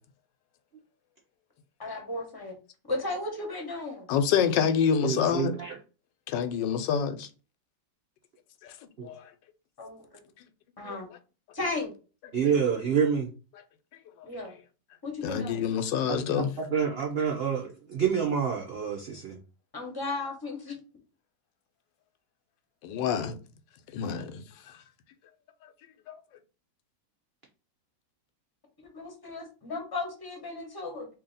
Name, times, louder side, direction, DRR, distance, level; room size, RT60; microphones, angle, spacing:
voice 1, 1.8-2.6 2.9-4.1 9.8-10.1 10.8-11.1 11.5-11.9 14.2-14.5 15.0-15.6 19.7-20.8 28.8-31.1, left 2 dB, 20° left, 0.7 m, -35 dB
voice 2, 4.1-5.5 6.3-7.3 8.6-8.7 9.0-9.3 10.8-11.0 15.2-16.5 22.8-23.4 23.9-24.4 26.1-26.2, left 7 dB, 85° left, 1.3 m, -27 dB
voice 3, 5.0-5.8 9.0-9.1 12.3-13.3 16.1-19.4, right 7 dB, 70° right, 0.5 m, -28 dB
2.8 x 2.8 x 3.9 m
omnidirectional pair, 1.9 m